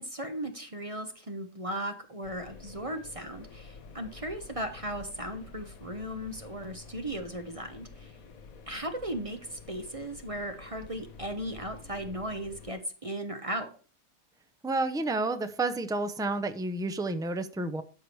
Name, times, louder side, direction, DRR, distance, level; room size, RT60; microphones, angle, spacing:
voice 1, 0.0-8.1 8.7-13.7, right 1 dB, 25° right, 6 dB, 0.9 m, -37 dB
sound 1, 2.2-12.7, left 4 dB, 75° left, 1.4 m, -49 dB
voice 2, 14.6-17.8, right 2 dB, 5° right, 9 dB, 0.5 m, -30 dB
13.0 x 4.8 x 4.8 m, 0.38 s
omnidirectional pair, 1.5 m